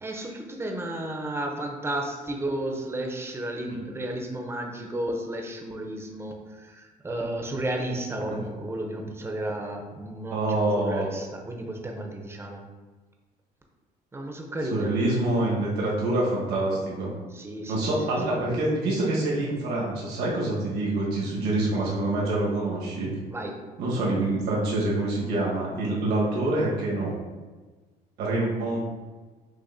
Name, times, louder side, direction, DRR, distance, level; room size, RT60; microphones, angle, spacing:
voice 1, 0.0-12.6 14.1-14.9 17.3-17.9 23.3-23.6, right 1 dB, 15° right, 2 dB, 0.7 m, -33 dB
voice 2, 10.3-11.1 14.7-17.1 17.7-23.1 23.8-27.1 28.2-28.8, right 2 dB, 80° right, -5 dB, 1.4 m, -26 dB
6.4 x 2.7 x 2.7 m, 1.3 s
cardioid pair, 110°, 17 cm